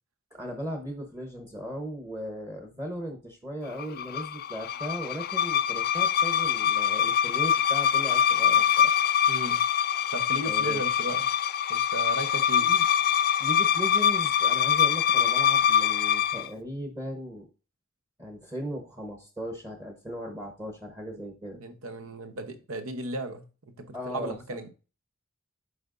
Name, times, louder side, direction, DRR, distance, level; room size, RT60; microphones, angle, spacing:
voice 1, 0.3-9.0 10.4-10.8 12.6-12.9 13.4-17.5 18.2-21.6 23.9-24.4, equal, 15° right, 3 dB, 1.0 m, -37 dB
sound 1, 3.8-16.5, left 9 dB, 45° left, 0.3 m, -24 dB
voice 2, 9.3-9.7 10.1-11.3 11.7-12.7 21.6-24.7, right 2 dB, 75° right, 8 dB, 1.0 m, -36 dB
8.5 x 5.1 x 2.6 m, 0.33 s
head